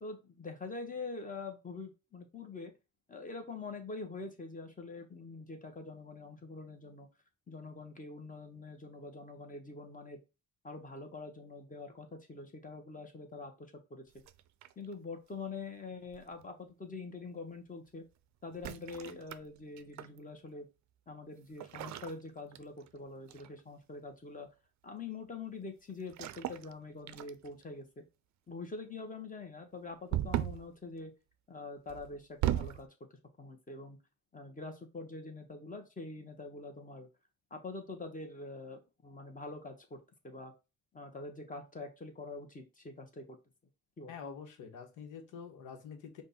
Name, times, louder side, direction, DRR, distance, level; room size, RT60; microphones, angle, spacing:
voice 1, 0.0-2.7 3.1-7.1 7.5-10.2 10.6-14.0 14.8-18.0 18.4-20.7 21.1-24.5 24.8-28.0 28.5-31.1 31.5-32.9 33.4-34.0 34.3-37.1 37.5-40.0 40.2-40.5 40.9-43.4 44.0-44.1, left 3 dB, 25° left, 1.3 m, -45 dB
sound 1, 14.2-14.9 16.1-16.5 18.5-20.2 21.6-23.0 23.3-23.6 26.1-26.7 27.1-27.6 30.1-30.7 31.9-32.8, right 13 dB, 65° right, 0.5 m, -37 dB
voice 2, 44.1-46.2, left 6 dB, 90° left, 1.2 m, -46 dB
5.1 x 2.5 x 4.1 m
cardioid pair, 90°, 30 cm